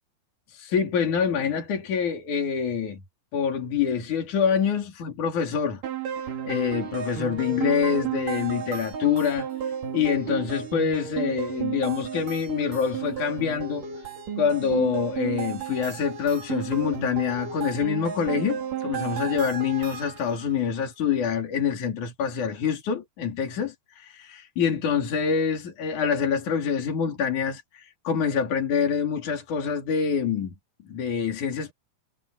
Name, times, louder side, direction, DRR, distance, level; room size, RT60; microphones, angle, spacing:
voice 1, 0.5-3.0 3.3-5.8 6.4-9.5 9.9-13.9 14.4-30.5 30.8-31.7, left 7 dB, 70° left, 4.6 m, -26 dB
sound 1, 5.8-20.5, right 8 dB, 90° right, 4.4 m, -33 dB
omnidirectional pair, 3.7 m